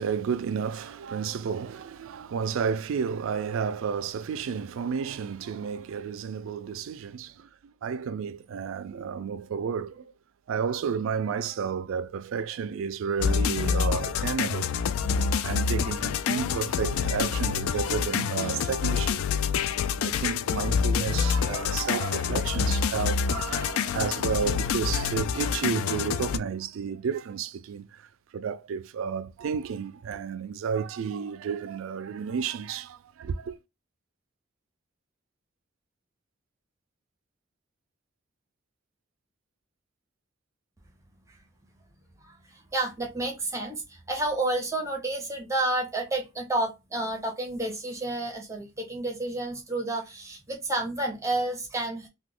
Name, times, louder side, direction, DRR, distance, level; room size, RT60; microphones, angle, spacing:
voice 1, 0.0-10.1 10.5-14.8 15.4-19.3 20.0-28.1 28.3-33.6, right 6 dB, 75° right, 0.3 m, -31 dB
sound 1, 13.2-26.4, left 6 dB, 90° left, 0.3 m, -27 dB
voice 2, 42.2-52.1, right 2 dB, 15° right, 0.6 m, -30 dB
2.9 x 2.2 x 3.7 m
head